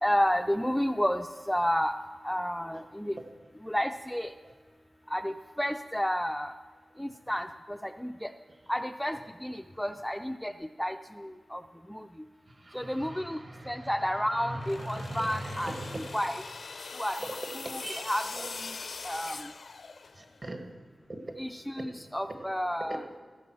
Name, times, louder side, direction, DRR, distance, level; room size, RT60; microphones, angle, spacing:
voice 1, 0.0-1.9 2.2-3.2 3.6-4.3 5.1-6.5 7.0-8.3 8.7-10.5 10.8-11.6 11.9-12.1 12.7-13.4 13.7-15.7 16.1-16.4 17.0-17.2 17.7-18.7 19.0-19.4 21.4-23.0, equal, 5° left, 8 dB, 0.3 m, -31 dB
voice 2, 12.5-16.2 17.2-17.3 17.6-18.5 20.1-20.6 21.1-21.4 21.8-21.9 22.9-23.2, right 1 dB, 40° right, 4 dB, 1.5 m, -40 dB
sound 1, 14.5-20.4, left 4 dB, 70° left, 0.5 m, -42 dB
14.5 x 7.6 x 6.2 m, 1.4 s
wide cardioid pair, 110°, 0 cm